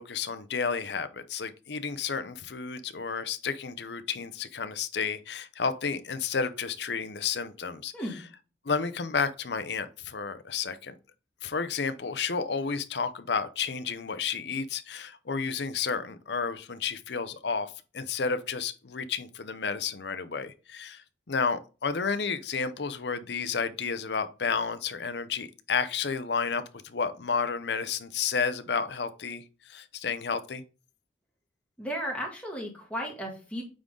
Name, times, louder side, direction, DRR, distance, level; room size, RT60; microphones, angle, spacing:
voice 1, 0.0-7.9 8.6-10.9 11.4-30.6, left 5 dB, 65° left, 0.6 m, -31 dB
voice 2, 31.8-33.6, equal, 5° left, 1.8 m, -34 dB
8.7 x 3.8 x 3.7 m
head